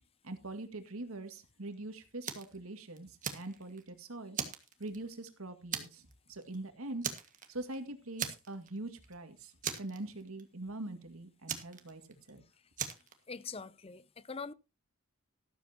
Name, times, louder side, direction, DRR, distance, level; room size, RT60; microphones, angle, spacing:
voice 1, 0.2-4.4 4.8-7.1 7.5-9.5 9.8-12.0 12.3-12.4, right 2 dB, 80° right, 2.1 m, -43 dB
Fire, 2.2-2.6 3.0-3.9 4.3-5.3 5.7-6.1 6.4-6.6 7.0-7.8 8.2-8.8 9.0-9.1 9.6-10.4 11.5-12.3 12.8-13.1, right 8 dB, 40° right, 1.7 m, -39 dB
voice 2, 13.3-14.5, left 5 dB, 25° left, 0.6 m, -43 dB
13.0 x 13.0 x 2.9 m
head